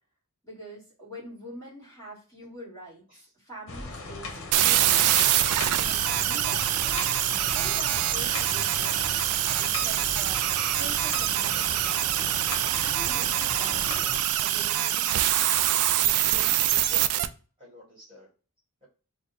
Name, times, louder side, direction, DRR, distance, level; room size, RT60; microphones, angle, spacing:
voice 1, 0.4-5.4 5.7-7.1 7.4-10.4 10.7-12.3 12.6-14.0 14.4-15.3, right 1 dB, 15° left, -6 dB, 1.9 m, -44 dB
sound 1, 3.7-14.2, left 3 dB, 60° left, 0.8 m, -38 dB
sound 2, 4.5-17.3, right 12 dB, 75° right, 0.3 m, -25 dB
voice 2, 16.3-17.3 17.6-18.3, right 1 dB, 25° right, -6 dB, 1.4 m, -48 dB
3.5 x 2.2 x 4.0 m, 0.37 s
head